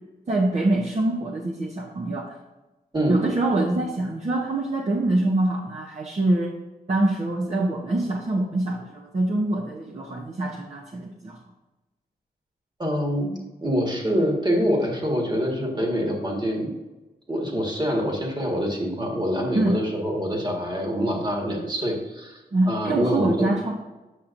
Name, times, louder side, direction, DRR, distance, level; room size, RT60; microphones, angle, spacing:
voice 1, 0.3-2.3 3.1-6.5 6.9-11.4 19.5-19.8 22.5-23.8, right 2 dB, 40° right, -2 dB, 0.8 m, -24 dB
voice 2, 12.8-16.7 17.3-22.4 22.7-23.5, equal, 25° right, 0 dB, 1.6 m, -25 dB
8.4 x 5.7 x 2.6 m, 1.1 s
cardioid pair, 65°, 17 cm